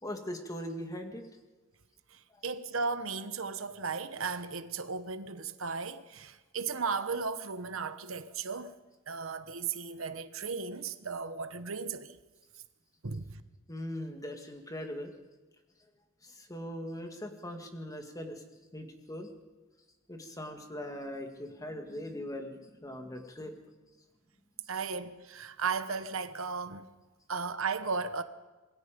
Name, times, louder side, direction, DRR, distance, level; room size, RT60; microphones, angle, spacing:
voice 1, 0.0-1.2 13.7-15.1 16.2-18.4 18.7-19.3 20.1-23.5, left 1 dB, 15° left, 2.2 m, -40 dB
voice 2, 2.1-8.8 9.1-12.2 13.0-13.4 24.7-26.9 27.3-28.2, right 5 dB, 75° right, 1.2 m, -35 dB
27.0 x 21.0 x 5.3 m
head